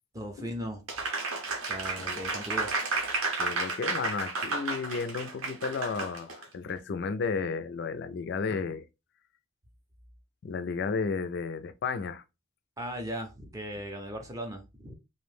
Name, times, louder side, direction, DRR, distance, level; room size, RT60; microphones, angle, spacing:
voice 1, 0.1-0.8 1.7-2.7 12.8-15.0, equal, 15° right, 0.5 m, -37 dB
Applause, 0.9-6.4, right 3 dB, 80° right, 0.7 m, -32 dB
voice 2, 3.4-8.8 10.4-12.2, left 5 dB, 50° left, 0.3 m, -33 dB
2.6 x 2.1 x 3.1 m
head